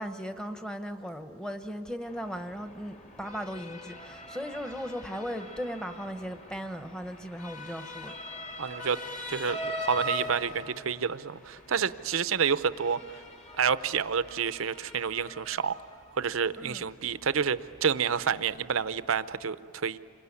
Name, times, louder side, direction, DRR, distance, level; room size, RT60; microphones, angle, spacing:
voice 1, 0.0-8.1 16.6-16.8, equal, 5° left, 1.0 m, -37 dB
Motor vehicle (road) / Siren, 2.0-19.4, equal, 35° left, 2.1 m, -42 dB
voice 2, 8.6-9.0 9.3-13.2 13.6-15.8 16.1-20.0, right 6 dB, 65° right, 0.7 m, -29 dB
27.0 x 22.5 x 9.7 m
head